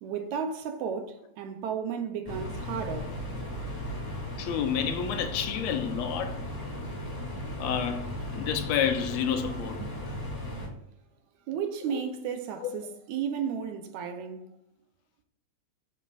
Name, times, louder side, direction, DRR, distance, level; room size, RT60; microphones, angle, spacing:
voice 1, 0.0-3.4 3.8-3.9 9.8-9.9 11.5-14.5, right 7 dB, 80° right, 2.0 m, -34 dB
sound 1, 2.3-10.7, left 1 dB, 20° left, 0.9 m, -36 dB
voice 2, 4.4-6.4 7.6-9.8 11.9-12.0 12.6-12.8, left 8 dB, 75° left, 1.7 m, -30 dB
6.9 x 5.7 x 2.5 m
omnidirectional pair, 3.4 m